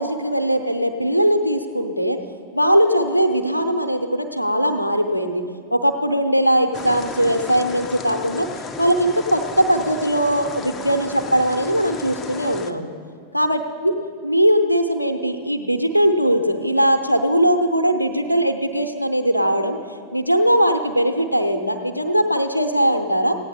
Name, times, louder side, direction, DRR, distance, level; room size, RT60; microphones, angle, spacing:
voice 1, 0.0-2.2 2.5-5.4 5.7-8.5 8.8-12.9 13.3-13.9 14.2-19.8 20.1-23.3, equal, 90° left, 8 dB, 0.7 m, -20 dB
sound 1, 6.7-12.7, left 4 dB, 20° left, 0.7 m, -34 dB
15.5 x 9.1 x 4.2 m, 2.2 s
figure-of-eight pair, 90°, 0 cm